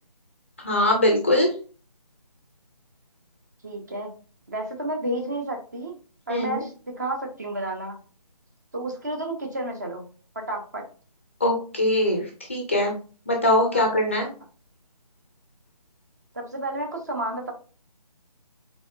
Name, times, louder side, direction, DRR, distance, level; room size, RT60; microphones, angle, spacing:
voice 1, 0.6-1.5 6.3-6.6 11.4-12.9 13.3-14.3, left 1 dB, 20° left, 2 dB, 0.5 m, -22 dB
voice 2, 3.6-4.1 4.5-6.0 6.3-8.0 8.7-10.0 10.4-10.8 13.7-13.9 16.3-17.5, right 1 dB, 25° right, 2 dB, 0.6 m, -31 dB
4.0 x 3.8 x 2.3 m, 0.38 s
figure-of-eight pair, 155°, 21 cm